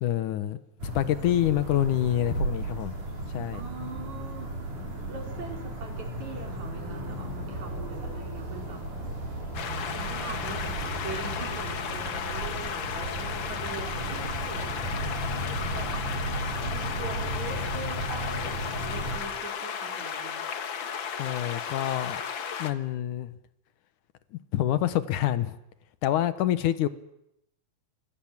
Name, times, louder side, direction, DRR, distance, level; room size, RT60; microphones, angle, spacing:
voice 1, 0.0-3.0 3.3-3.6 21.2-22.2 22.6-23.4 24.3-25.6 26.0-26.9, left 12 dB, 90° left, 13 dB, 2.7 m, -27 dB
sound 1, 0.8-19.2, right 1 dB, 85° right, 7.3 m, -35 dB
voice 2, 3.5-4.5 5.1-8.8 9.9-15.9 16.6-20.4, right 3 dB, 70° right, 3 dB, 5.4 m, -42 dB
sound 2, 9.5-22.7, left 7 dB, 50° left, 1.7 m, -34 dB
27.0 x 25.5 x 7.5 m, 0.81 s
omnidirectional pair, 3.4 m